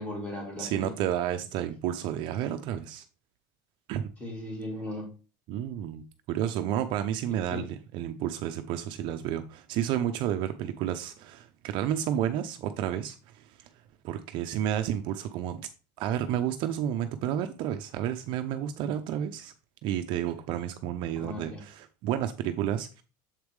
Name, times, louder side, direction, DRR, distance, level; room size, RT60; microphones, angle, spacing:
voice 1, 0.0-1.1 4.2-5.1 7.3-7.7 21.2-21.6, left 1 dB, 10° left, 2.6 m, -37 dB
voice 2, 0.6-3.0 3.9-4.1 5.5-7.7 7.9-13.7 14.0-15.7 16.0-19.5 19.8-23.0, right 10 dB, 50° right, 0.5 m, -31 dB
7.3 x 4.7 x 3.5 m
cardioid pair, 160°, 11 cm